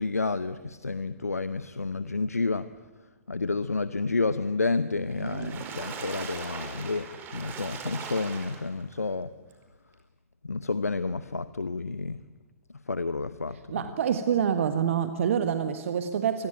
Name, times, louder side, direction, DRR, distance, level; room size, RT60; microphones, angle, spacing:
voice 1, 0.0-2.7 3.3-9.3 10.4-12.2 12.9-13.6, left 3 dB, 85° left, 14 dB, 0.9 m, -30 dB
Water / Splash splatter, 5.1-8.9 9.5-9.6 9.9-10.0, right 6 dB, 25° right, 4.9 m, -40 dB
voice 2, 5.2-5.7 13.7-16.5, right 8 dB, 55° right, 9 dB, 1.5 m, -27 dB
27.0 x 21.5 x 9.3 m, 1.2 s
figure-of-eight pair, 115°, 8 cm